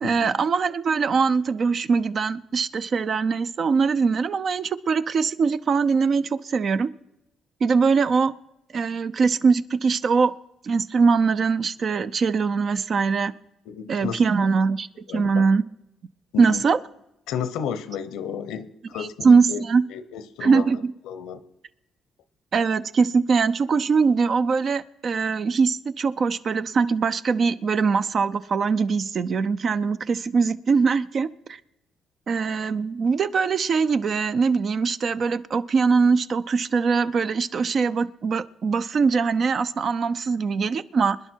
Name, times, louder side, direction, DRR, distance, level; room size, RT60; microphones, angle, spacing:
voice 1, 0.0-6.9 7.6-8.3 8.7-10.3 10.6-13.3 13.9-14.9 15.1-15.6 16.4-16.8 19.0-19.8 20.4-20.8 22.5-31.6 32.3-41.2, right 5 dB, 50° right, 13 dB, 0.5 m, -22 dB
voice 2, 13.7-14.2 15.1-15.4 16.3-16.6 17.3-19.6 19.9-20.7 21.0-21.4, left 8 dB, 90° left, 14 dB, 0.8 m, -32 dB
25.5 x 10.0 x 4.5 m, 0.89 s
cardioid pair, 90°, 0 cm